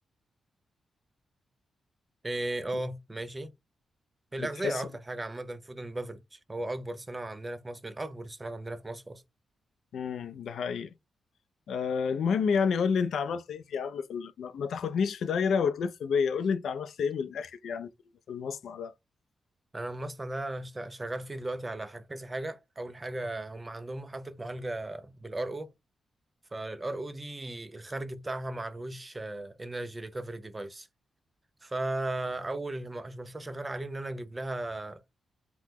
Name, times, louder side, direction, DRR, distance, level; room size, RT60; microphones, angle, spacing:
voice 1, 2.2-3.5 4.3-9.2 19.7-25.7 26.5-30.9 31.6-35.0, right 2 dB, 15° right, 0.3 m, -36 dB
voice 2, 4.4-4.8 9.9-10.9 11.7-17.9 18.3-18.9, left 6 dB, 70° left, 0.3 m, -30 dB
2.8 x 2.0 x 3.4 m
wide cardioid pair, 160°, 0 cm